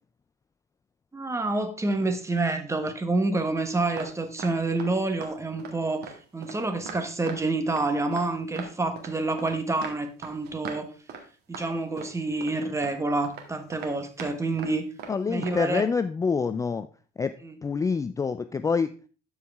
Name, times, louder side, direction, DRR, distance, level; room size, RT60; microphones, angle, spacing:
voice 1, 1.1-10.9 11.5-14.9 15.3-15.8 17.4-17.5, right 2 dB, 15° right, 7 dB, 1.3 m, -28 dB
sound 1, 3.6-4.1 4.4-4.9 5.2-5.3 5.6-5.7 6.0-7.4 7.7-8.3 8.5-9.6 9.8-10.8 11.1-11.2 11.5-11.6 12.0-12.6 12.8-12.9 13.2-13.5 13.7-14.3 14.6-14.7 15.0-15.1 15.4-15.6, right 6 dB, 80° right, 1.8 m, -39 dB
voice 2, 15.1-16.9 17.2-17.3 17.6-18.9, left 5 dB, 20° left, 12 dB, 0.4 m, -26 dB
12.5 x 4.8 x 3.4 m, 0.36 s
cardioid pair, 110°, 17 cm